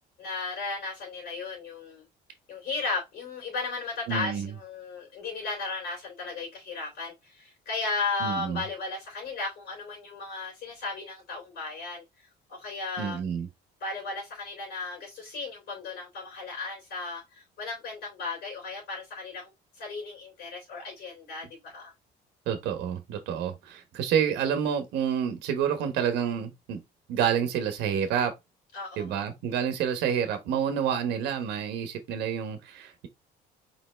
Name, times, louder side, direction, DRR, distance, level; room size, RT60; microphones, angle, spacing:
voice 1, 0.2-2.0 2.5-13.2 13.8-21.9 28.7-29.0, left 3 dB, 70° left, 3.4 m, -35 dB
voice 2, 4.1-4.5 8.2-8.6 13.0-13.5 22.5-26.8 27.1-28.3 29.0-33.1, right 8 dB, 85° right, 1.1 m, -28 dB
4.8 x 3.1 x 3.3 m
cardioid pair, 110°, 17 cm